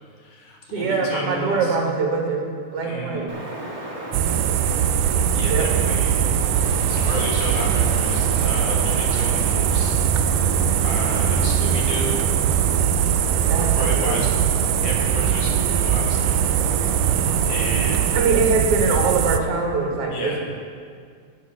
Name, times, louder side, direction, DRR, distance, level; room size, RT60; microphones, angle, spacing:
voice 1, 0.2-1.7 2.8-3.4 5.3-6.3 6.9-10.0 10.3-10.6 10.8-12.2 13.6-14.3 14.8-16.4 16.9-18.2 20.1-20.4, left 2 dB, 75° left, -1 dB, 3.2 m, -32 dB
voice 2, 0.7-3.3 5.5-5.7 13.5-14.2 18.1-20.4, right 4 dB, 55° right, 0 dB, 2.2 m, -23 dB
Wind, 3.3-18.1, right 1 dB, 30° right, 0.6 m, -32 dB
sound 1, 4.1-19.4, right 9 dB, 85° right, 2.1 m, -21 dB
16.0 x 6.0 x 5.8 m, 2.1 s
omnidirectional pair, 3.6 m